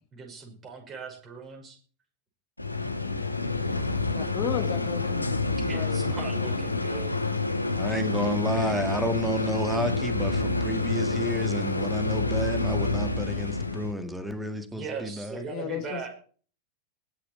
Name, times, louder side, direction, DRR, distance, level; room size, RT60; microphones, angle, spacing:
voice 1, 0.1-1.8 5.7-7.4 14.7-16.1, right 5 dB, 25° right, 2 dB, 5.7 m, -39 dB
sound 1, 2.6-13.9, left 3 dB, 85° left, 1.4 m, -28 dB
voice 2, 4.1-6.5 15.4-16.1, left 10 dB, 40° left, 6 dB, 1.9 m, -35 dB
voice 3, 7.7-15.4, equal, 5° right, 9 dB, 2.0 m, -31 dB
20.0 x 7.0 x 4.4 m, 0.41 s
figure-of-eight pair, 90°, 0 cm